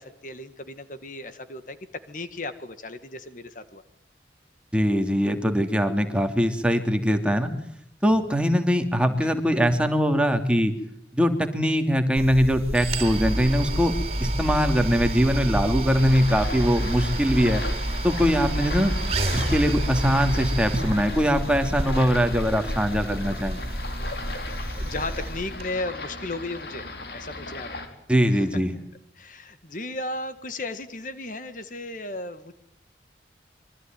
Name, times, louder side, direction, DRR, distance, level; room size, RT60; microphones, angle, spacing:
voice 1, 0.0-1.8 2.1-3.8 9.2-9.3 14.1-14.3 24.8-27.7 28.3-28.4 29.2-32.5, left 2 dB, 45° left, 10 dB, 1.8 m, -35 dB
voice 2, 4.7-7.5 8.0-10.7 11.1-13.9 14.2-17.6 18.0-18.9 19.3-23.6 28.1-28.7, equal, 5° right, 5 dB, 2.8 m, -22 dB
sound 1, 12.2-25.7, right 1 dB, 35° right, 4.1 m, -29 dB
sound 2, 15.9-27.9, left 2 dB, 60° left, 4.7 m, -37 dB
26.5 x 24.0 x 9.3 m, 0.69 s
head